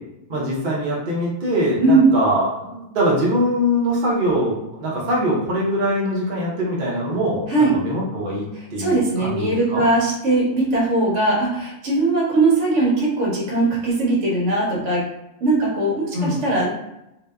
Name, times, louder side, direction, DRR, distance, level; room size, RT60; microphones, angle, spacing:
voice 1, 0.3-9.9 16.1-16.4, equal, 50° right, -5 dB, 0.7 m, -23 dB
voice 2, 1.8-2.1 7.5-7.7 8.8-15.0 15.4-16.7, right 2 dB, 75° right, -4 dB, 1.1 m, -19 dB
2.7 x 2.1 x 2.2 m, 0.88 s
omnidirectional pair, 1.3 m